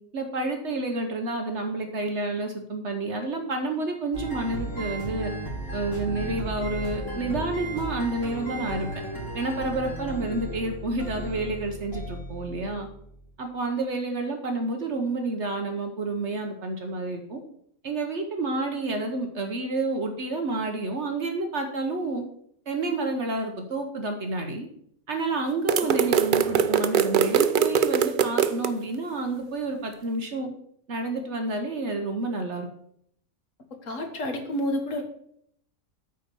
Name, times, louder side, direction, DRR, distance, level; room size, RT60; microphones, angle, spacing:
voice 1, 0.1-5.3 5.7-8.9 9.3-12.9 13.4-17.4 17.8-22.2 22.7-24.7 25.1-30.5 30.9-32.7, right 2 dB, 55° right, 4 dB, 1.1 m, -29 dB
sound 1, 4.1-13.3, right 1 dB, 80° left, 3.4 m, -35 dB
sound 2, 25.7-28.7, right 8 dB, 75° right, 0.4 m, -22 dB
voice 2, 33.8-35.0, left 1 dB, 65° left, 4 dB, 1.8 m, -30 dB
9.1 x 4.1 x 6.8 m, 0.69 s
omnidirectional pair, 1.5 m